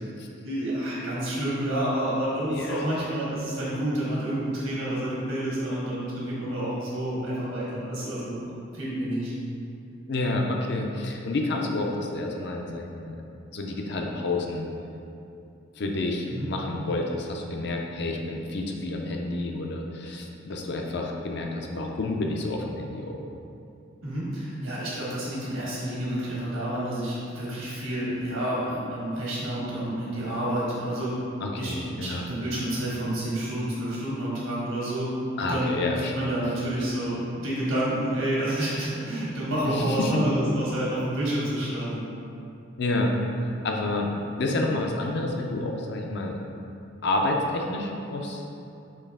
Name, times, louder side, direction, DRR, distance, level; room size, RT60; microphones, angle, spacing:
voice 1, 0.4-8.4 8.7-9.3 16.3-16.5 24.0-31.2 31.6-35.1 35.4-42.1, right 1 dB, 80° right, -7 dB, 1.4 m, -29 dB
voice 2, 2.5-2.9 10.1-13.2 13.5-14.7 15.8-23.2 31.4-32.2 35.4-36.3 39.6-40.2 42.8-43.1 43.6-44.1 44.4-46.4 47.0-48.4, left 2 dB, 55° left, 1 dB, 0.4 m, -29 dB
4.5 x 3.1 x 3.5 m, 2.7 s
head